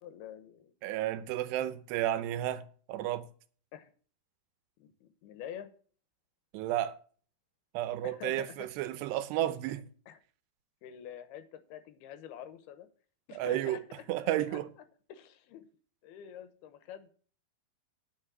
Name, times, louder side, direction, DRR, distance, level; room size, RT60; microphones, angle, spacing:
voice 1, 0.0-0.7 3.7-3.9 4.8-5.7 8.0-8.7 9.7-9.8 10.1-10.2 10.8-12.9 13.3-14.6 15.1-15.7 16.0-17.1, left 9 dB, 75° left, 2.8 m, -47 dB
voice 2, 0.8-3.3 6.5-7.0 7.7-9.9 13.4-13.8 14.1-14.7, right 13 dB, 85° right, 3.0 m, -32 dB
10.0 x 6.4 x 6.2 m
omnidirectional pair, 4.7 m